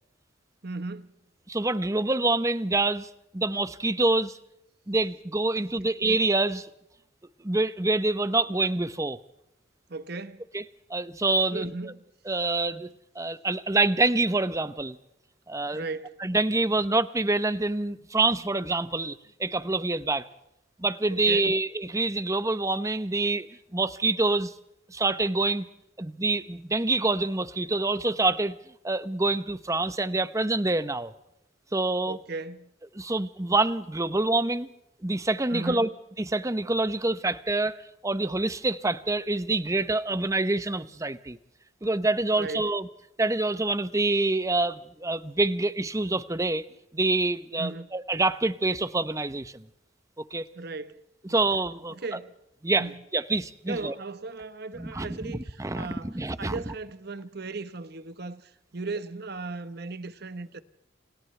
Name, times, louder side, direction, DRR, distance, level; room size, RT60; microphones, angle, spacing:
voice 1, 0.6-1.1 5.5-5.9 9.9-10.5 11.5-12.0 15.7-16.2 21.1-21.6 32.1-32.7 35.5-35.9 42.3-42.7 47.6-47.9 50.5-51.0 51.3-51.4 51.9-52.4 52.8-53.0 53.7-60.6, right 3 dB, 60° right, 1.2 m, -37 dB
voice 2, 1.5-4.4 4.9-6.7 7.4-9.2 10.5-10.6 10.9-11.7 12.3-12.9 13.1-15.0 15.5-15.8 16.2-20.3 20.8-23.5 23.7-24.5 24.9-25.7 26.0-28.6 28.8-31.1 31.7-32.2 32.9-34.7 35.0-35.9 36.2-41.4 41.8-42.9 43.2-46.6 46.9-49.6 50.2-50.5 51.3-51.9 52.6-52.9 53.1-53.9 54.8-56.5, right 2 dB, 15° right, 0.8 m, -26 dB
29.5 x 27.5 x 3.4 m
head